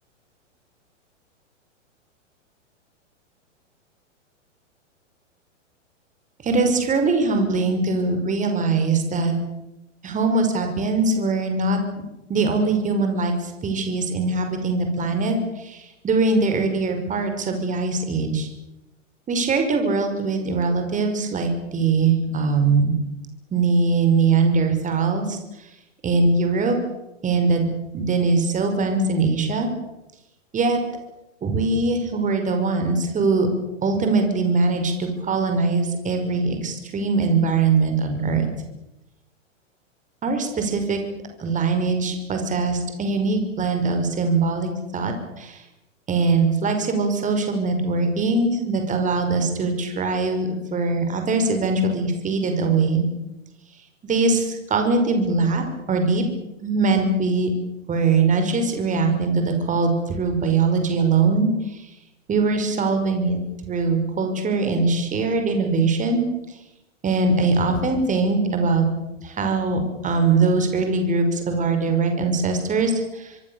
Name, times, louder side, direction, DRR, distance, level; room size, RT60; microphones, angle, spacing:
voice 1, 6.4-9.4 10.0-11.8 12.3-18.5 19.3-22.9 23.5-25.7 26.0-26.8 27.2-29.7 30.5-30.8 31.4-33.5 33.8-38.5 40.2-41.0 41.4-45.6 46.1-53.0 54.0-56.2 56.6-57.5 57.9-61.9 62.3-63.4 63.6-66.3 67.0-68.9 69.2-73.4, right 3 dB, 20° right, 6 dB, 5.5 m, -22 dB
25.5 x 24.0 x 7.2 m, 0.92 s
figure-of-eight pair, 110°, 37 cm